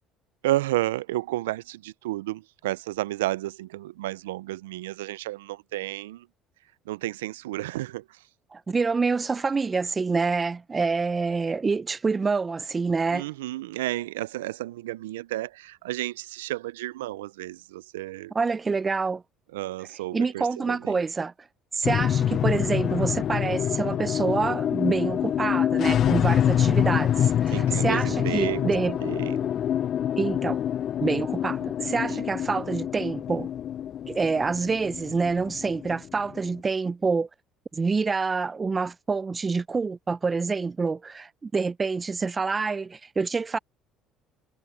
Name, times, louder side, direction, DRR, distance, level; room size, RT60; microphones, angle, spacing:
voice 1, 0.4-6.3 6.9-8.2 13.1-18.3 19.5-21.0 27.5-28.7 29.0-29.5 31.9-32.2, right 16 dB, 85° right, 0.5 m, -32 dB
voice 2, 8.5-13.3 18.3-19.2 20.1-21.3 21.7-29.0 30.2-30.6 31.0-33.5 34.1-37.3 37.7-43.6, right 4 dB, 30° right, 0.6 m, -27 dB
sound 1, 21.8-36.5, left 10 dB, 50° left, 0.5 m, -26 dB
hypercardioid pair, 65°, 0 cm